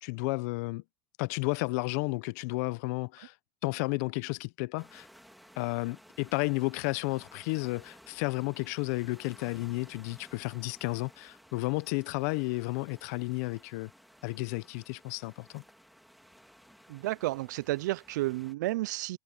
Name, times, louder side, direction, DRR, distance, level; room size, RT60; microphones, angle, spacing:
voice 1, 0.0-0.8 1.2-3.3 3.6-5.1 5.6-13.9 14.2-15.6, left 25 dB, 65° left, 0.7 m, -32 dB
sound 1, 4.8-18.5, equal, ahead, 2.0 m, -57 dB
voice 2, 16.9-19.2, right 18 dB, 85° right, 0.4 m, -31 dB
supercardioid pair, 145°, 10 cm